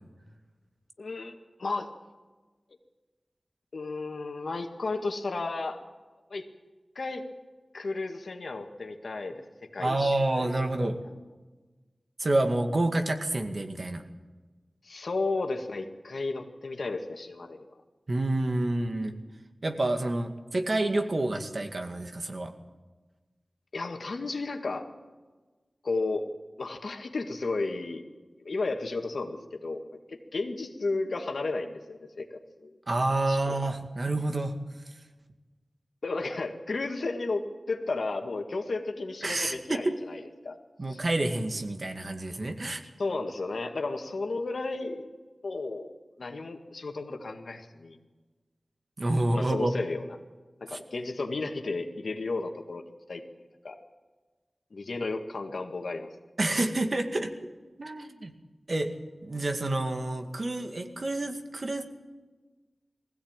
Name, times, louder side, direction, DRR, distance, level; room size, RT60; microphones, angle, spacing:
voice 1, 1.0-1.9 3.7-5.8 6.3-6.5 7.0-7.2 7.7-9.4 9.7-10.5 14.8-17.7 23.7-24.9 25.8-26.3 26.6-28.0 28.4-32.3 32.6-32.7 33.3-33.6 36.0-40.6 40.9-41.0 43.0-45.9 46.2-48.0 49.3-50.0 50.6-52.8 53.1-53.2 53.6-53.8 54.7-56.1, left 3 dB, 85° left, 5 dB, 1.9 m, -33 dB
voice 2, 9.8-11.0 12.2-14.0 18.1-19.2 19.6-22.5 32.9-34.5 39.2-39.9 40.8-42.8 49.0-49.7 50.7-50.8 56.4-57.3 57.8-58.3 58.7-58.9 59.2-61.8, right 2 dB, 55° right, 5 dB, 2.1 m, -28 dB
20.5 x 16.0 x 9.0 m, 1.3 s
wide cardioid pair, 70°, 0 cm